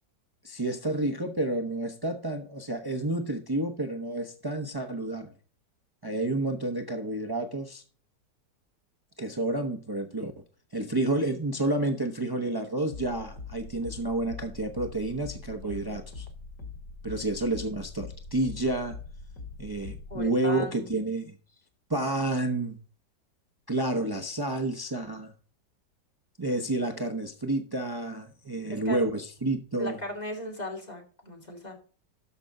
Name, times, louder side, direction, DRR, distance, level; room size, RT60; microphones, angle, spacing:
voice 1, 0.4-5.3 6.0-7.8 9.2-10.3 10.7-16.3 17.0-19.0 19.6-21.4 21.9-22.8 23.7-25.3 26.4-30.0, right 2 dB, 35° right, 0.3 m, -30 dB
sound 1, 12.9-20.3, left 4 dB, 70° left, 2.7 m, -43 dB
voice 2, 15.6-16.0 20.1-20.9 28.7-29.0 29.8-31.7, left 1 dB, 20° left, 2.6 m, -37 dB
13.0 x 5.7 x 3.8 m
omnidirectional pair, 2.0 m